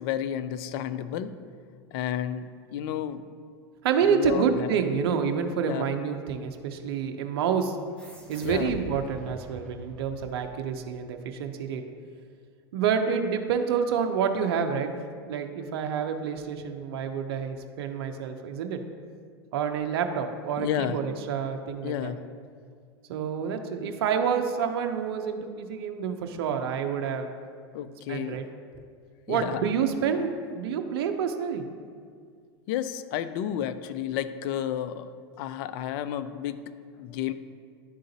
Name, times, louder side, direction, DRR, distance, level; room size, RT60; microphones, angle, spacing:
voice 1, 0.0-1.3 1.9-3.2 4.0-4.8 5.6-5.9 8.4-8.7 20.6-21.0 21.8-22.3 27.7-28.4 29.3-29.7 32.7-35.1 35.4-36.6 37.0-37.3, left 10 dB, 55° left, 12 dB, 0.4 m, -31 dB
voice 2, 3.8-7.8 8.3-11.8 12.7-14.9 15.3-18.8 19.5-22.1 23.1-27.3 28.1-28.4 29.3-31.6, right 7 dB, 70° right, 5 dB, 0.6 m, -28 dB
sound 1, 8.0-11.0, equal, 5° left, 1.3 m, -44 dB
11.0 x 3.7 x 2.8 m, 2.1 s
hypercardioid pair, 95°, 13 cm